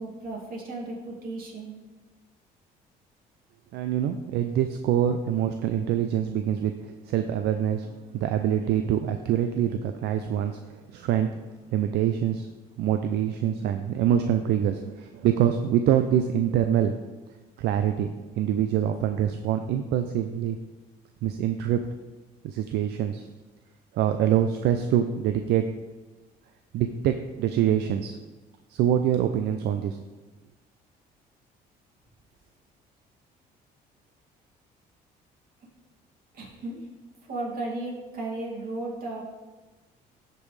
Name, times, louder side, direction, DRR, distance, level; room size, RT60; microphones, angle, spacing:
voice 1, 0.0-1.7 36.3-36.9 37.2-39.2, right 2 dB, 55° right, -2 dB, 2.5 m, -35 dB
voice 2, 3.7-11.3 11.7-12.5 12.8-17.0 17.6-20.6 21.2-21.8 22.4-23.3 23.9-25.6 26.7-28.2 28.7-30.0, right 10 dB, 75° right, 7 dB, 0.5 m, -25 dB
13.5 x 5.4 x 3.3 m, 1.3 s
cardioid pair, 110°, 17 cm